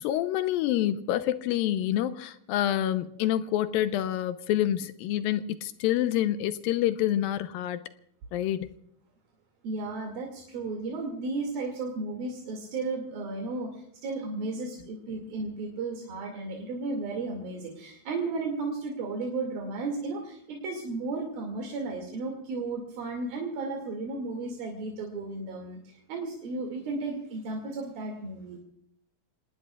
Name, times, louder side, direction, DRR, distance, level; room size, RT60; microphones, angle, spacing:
voice 1, 0.0-7.8 8.3-8.7, left 12 dB, 90° left, 2.6 m, -27 dB
voice 2, 9.6-28.6, right 3 dB, 80° right, 4.3 m, -34 dB
28.0 x 19.5 x 2.4 m
omnidirectional pair, 4.1 m